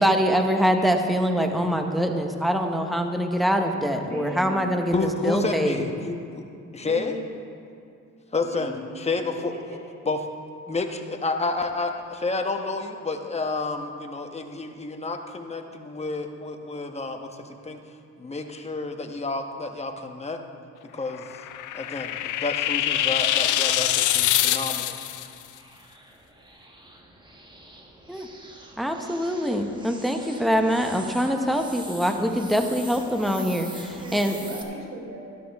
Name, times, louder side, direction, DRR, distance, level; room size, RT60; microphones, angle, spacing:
voice 1, 0.0-4.9 5.2-5.8 28.1-28.3 28.8-34.4, equal, ahead, 4 dB, 0.9 m, -24 dB
voice 2, 4.0-4.5 6.8-7.3 8.4-9.0 9.5-9.8 33.8-35.2, right 1 dB, 60° right, -1 dB, 3.2 m, -38 dB
voice 3, 4.9-6.4 6.7-7.1 8.3-9.5 10.1-10.2 10.7-17.8 18.2-20.4 20.9-21.3 21.7-25.0, left 3 dB, 20° left, 4 dB, 1.1 m, -30 dB
sound 1, 21.1-25.3, left 12 dB, 85° left, 0.6 m, -24 dB
sound 2, 23.2-34.6, right 1 dB, 15° right, 1.2 m, -45 dB
13.0 x 12.0 x 3.5 m, 2.5 s
cardioid pair, 90°, 30 cm